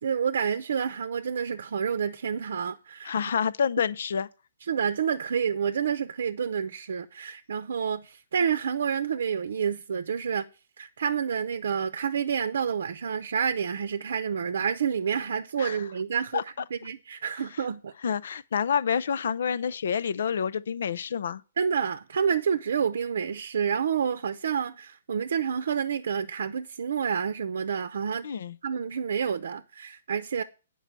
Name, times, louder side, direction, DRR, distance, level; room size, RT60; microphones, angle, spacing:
voice 1, 0.0-3.1 4.7-10.4 10.8-16.4 16.7-17.9 21.6-28.3 28.6-30.4, right 7 dB, 65° right, 0.7 m, -29 dB
voice 2, 3.0-4.3 15.6-15.8 16.3-16.4 18.0-21.4 28.2-28.6, left 7 dB, 65° left, 0.5 m, -28 dB
9.1 x 5.4 x 7.4 m
hypercardioid pair, 135°, 0 cm